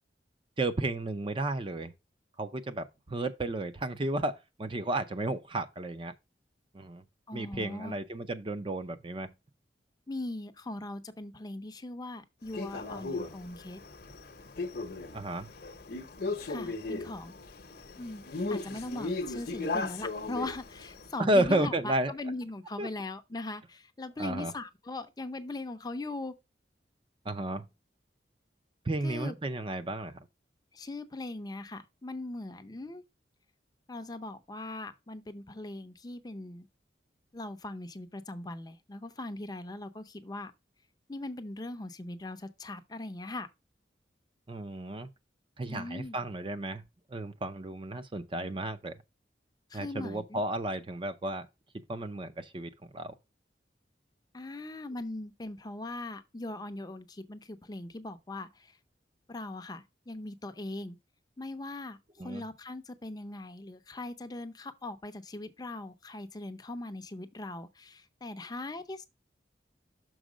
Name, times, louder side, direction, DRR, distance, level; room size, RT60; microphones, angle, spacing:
voice 1, 0.6-1.9 2.4-6.1 6.7-7.0 7.3-9.3 15.1-15.5 21.2-22.1 22.8-22.9 24.2-24.5 27.2-27.7 28.8-30.2 44.5-45.1 45.6-46.8 47.1-48.9 49.7-51.5 51.9-53.2 62.2-62.4, right 1 dB, 30° right, 0.5 m, -32 dB
voice 2, 7.3-8.0 10.1-13.8 16.5-17.3 18.0-26.3 29.0-29.3 30.7-33.0 33.9-36.7 37.3-40.5 41.1-43.5 45.7-46.2 49.7-50.4 54.3-58.8 59.3-61.0 61.4-69.0, left 2 dB, 20° left, 0.6 m, -40 dB
Male speech man speaking, 12.5-21.1, left 3 dB, 55° left, 0.8 m, -37 dB
6.3 x 4.4 x 4.9 m
head